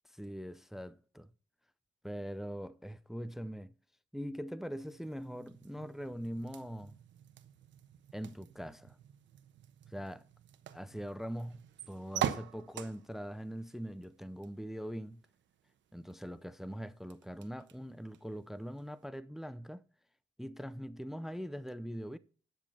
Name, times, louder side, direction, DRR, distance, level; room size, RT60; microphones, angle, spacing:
voice 1, 0.1-1.3 2.0-3.7 4.1-7.0 8.1-9.0 9.9-10.2 10.7-15.2 15.9-19.8 20.4-22.2, equal, ahead, 0.5 m, -42 dB
sound 1, 4.8-19.0, right 10 dB, 70° right, 1.0 m, -45 dB
10.5 x 7.2 x 5.5 m
cardioid pair, 90°, 20 cm